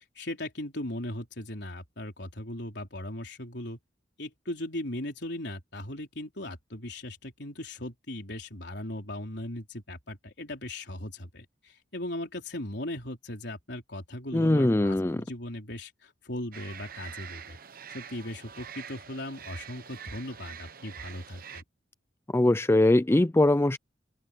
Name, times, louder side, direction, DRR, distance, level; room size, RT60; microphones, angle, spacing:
voice 1, 0.1-3.8 4.2-17.6 17.9-21.6, left 1 dB, 65° left, 4.5 m, -38 dB
voice 2, 14.3-15.2 22.3-23.8, left 1 dB, 15° left, 0.4 m, -22 dB
sound 1, 16.5-21.6, right 8 dB, 55° right, 1.2 m, -45 dB
open air
head